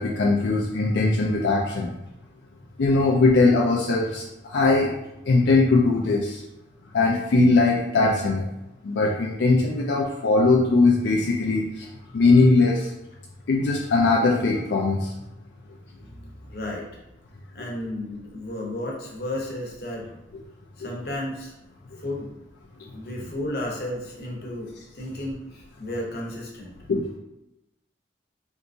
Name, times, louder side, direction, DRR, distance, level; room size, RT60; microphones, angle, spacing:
voice 1, 0.0-1.9 2.8-4.9 5.2-6.4 6.9-8.5 8.8-11.9 12.1-12.9 13.5-15.1 20.8-20.9 26.9-27.0, left 3 dB, 80° left, -2 dB, 0.4 m, -20 dB
voice 2, 15.9-16.9 17.5-20.1 20.8-21.5 22.0-22.3 22.8-26.8, left 1 dB, 60° left, -2 dB, 0.8 m, -33 dB
3.5 x 2.8 x 2.6 m, 0.89 s
head